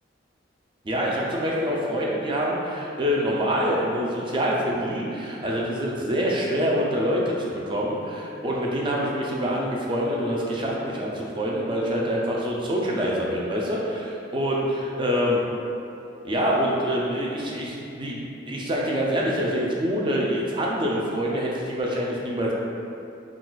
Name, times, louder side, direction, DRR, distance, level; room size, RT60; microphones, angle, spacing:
voice 1, 0.8-15.4 16.2-18.2 18.5-22.5, equal, 25° right, -3 dB, 0.4 m, -25 dB
2.3 x 2.3 x 3.9 m, 2.7 s
head